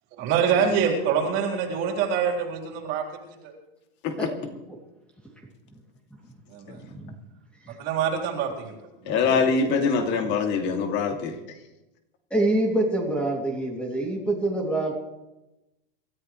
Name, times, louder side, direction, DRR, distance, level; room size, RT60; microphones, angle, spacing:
voice 1, 0.2-3.1 3.4-3.5 6.5-6.8 7.8-8.7 9.0-9.3 10.0-10.2, right 7 dB, 40° right, 0 dB, 3.9 m, -25 dB
voice 2, 4.2-4.8 6.7-7.1 7.6-7.7 9.2-9.3 12.3-14.9, right 1 dB, 5° left, -1 dB, 2.7 m, -26 dB
voice 3, 9.1-11.4, left 5 dB, 35° left, 5 dB, 2.6 m, -23 dB
27.0 x 14.0 x 3.2 m, 0.97 s
supercardioid pair, 155°, 29 cm